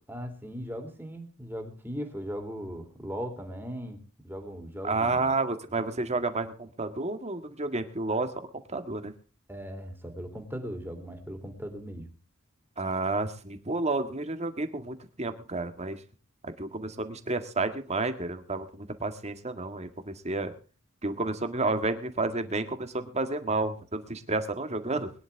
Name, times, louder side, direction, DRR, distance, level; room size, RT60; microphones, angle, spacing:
voice 1, 0.1-5.3 5.7-6.0 9.5-12.1, equal, 10° right, 4 dB, 3.2 m, -38 dB
voice 2, 4.8-9.1 12.8-16.0 16.4-20.5 21.0-25.1, right 3 dB, 30° right, 8 dB, 1.8 m, -31 dB
22.5 x 10.5 x 3.5 m, 0.36 s
head